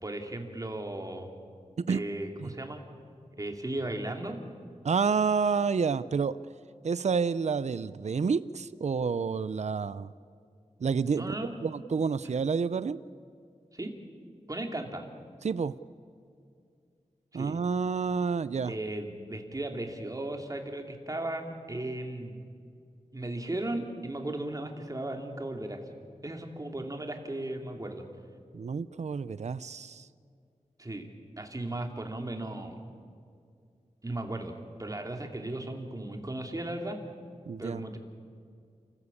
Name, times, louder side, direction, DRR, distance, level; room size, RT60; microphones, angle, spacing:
voice 1, 0.0-1.3 1.9-2.8 3.4-4.4 11.1-11.6 13.7-13.9 14.5-15.1 17.3-17.6 18.7-22.4 23.1-25.8 26.2-28.0 30.8-31.1 31.4-32.7 34.0-37.0 37.6-38.0, right 1 dB, 30° right, 3 dB, 2.7 m, -36 dB
voice 2, 4.8-6.4 6.8-10.1 10.8-11.4 11.6-13.0 15.4-15.7 17.3-18.7 28.5-30.1 37.5-37.8, right 5 dB, 65° right, 16 dB, 0.5 m, -29 dB
29.5 x 15.0 x 8.5 m, 2.3 s
wide cardioid pair, 90°, 12 cm